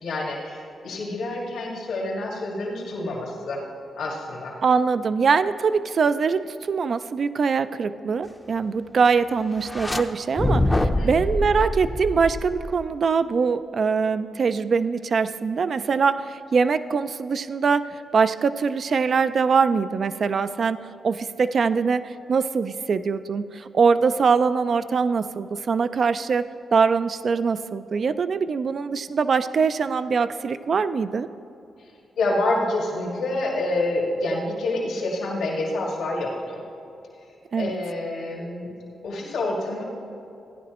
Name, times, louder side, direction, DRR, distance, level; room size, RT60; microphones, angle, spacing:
voice 1, 0.0-3.6 4.0-4.6 10.8-11.2 32.2-36.6 37.5-38.7 39.0-39.8, left 2 dB, 85° left, -3 dB, 1.9 m, -27 dB
voice 2, 4.6-20.8 21.0-31.3 37.5-37.8, right 5 dB, 55° right, 12 dB, 0.4 m, -23 dB
sound 1, 9.6-10.0 10.4-12.9, left 1 dB, 15° left, 0.6 m, -25 dB
15.0 x 10.0 x 3.0 m, 2.8 s
cardioid pair, 90°, 0 cm